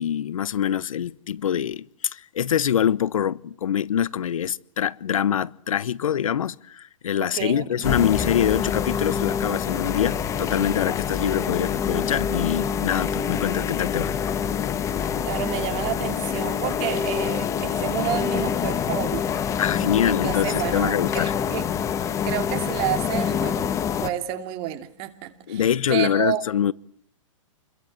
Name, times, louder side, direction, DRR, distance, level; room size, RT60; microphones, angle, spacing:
voice 1, 0.0-14.3 19.6-21.3 25.5-26.7, left 9 dB, 85° left, 1.1 m, -24 dB
voice 2, 7.2-7.9 15.2-19.5 20.1-21.7 22.2-23.7 24.0-26.4, right 14 dB, 35° right, 2.7 m, -30 dB
sound 1, 7.8-24.1, left 8 dB, 15° left, 1.3 m, -26 dB
29.0 x 22.5 x 7.8 m
hypercardioid pair, 145°, 17 cm